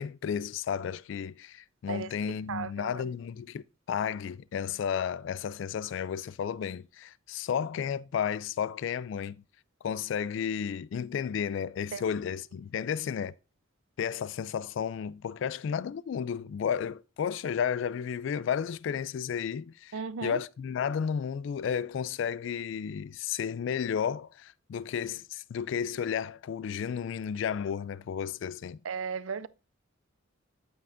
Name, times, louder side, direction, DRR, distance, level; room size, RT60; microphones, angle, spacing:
voice 1, 0.0-9.4 9.8-13.3 14.0-28.8, left 7 dB, 65° left, 0.3 m, -33 dB
voice 2, 2.5-3.0 11.9-12.0 19.9-20.4 28.8-29.5, right 5 dB, 85° right, 0.5 m, -35 dB
9.9 x 9.0 x 2.6 m
head